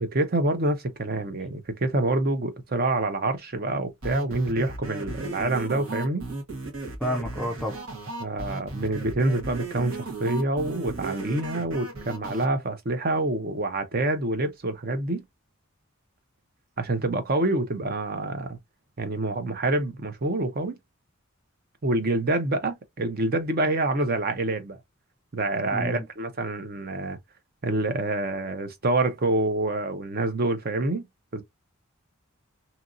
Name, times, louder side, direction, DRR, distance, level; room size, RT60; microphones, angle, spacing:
voice 1, 0.0-6.2 8.2-15.2 16.8-18.6 19.0-20.8 21.8-24.8 25.3-27.2 27.6-31.1 31.3-31.4, right 2 dB, 45° right, 0.6 m, -27 dB
sound 1, 4.0-12.5, right 3 dB, 80° right, 1.2 m, -35 dB
voice 2, 7.0-7.8 25.7-26.1, equal, 5° left, 0.3 m, -29 dB
2.8 x 2.6 x 2.5 m
head